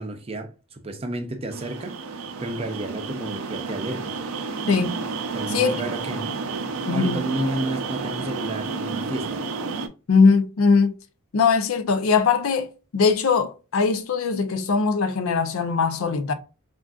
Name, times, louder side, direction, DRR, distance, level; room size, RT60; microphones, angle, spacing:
voice 1, 0.0-4.1 5.3-6.3 6.9-9.4, right 1 dB, 25° right, 0.5 m, -31 dB
sound 1, 1.5-9.9, right 4 dB, 80° right, 0.5 m, -31 dB
voice 2, 5.5-5.8 6.9-7.2 10.1-10.9 11.3-16.3, left 5 dB, 75° left, 0.5 m, -21 dB
3.7 x 2.5 x 2.3 m
head